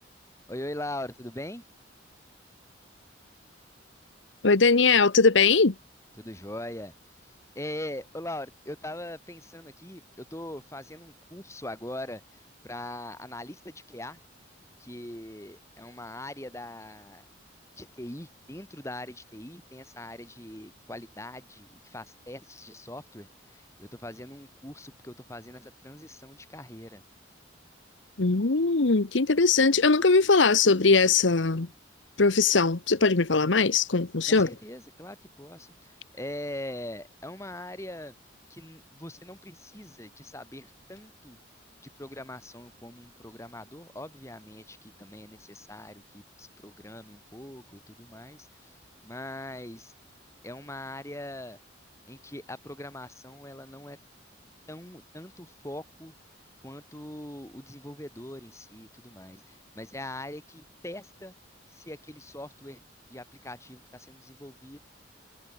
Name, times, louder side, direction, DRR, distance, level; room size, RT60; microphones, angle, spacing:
voice 1, 0.5-1.7 6.2-6.9 7.5-14.2 14.8-17.3 17.8-27.0 34.3-38.1 38.5-41.4 41.8-48.7 49.0-49.9 50.4-51.6 52.1-54.0 54.7-56.1 56.6-61.3 61.7-62.8 63.1-64.8, left 1 dB, 15° left, 5.0 m, -41 dB
voice 2, 4.4-5.7 28.2-31.7 32.2-34.5, left 4 dB, 75° left, 1.1 m, -21 dB
head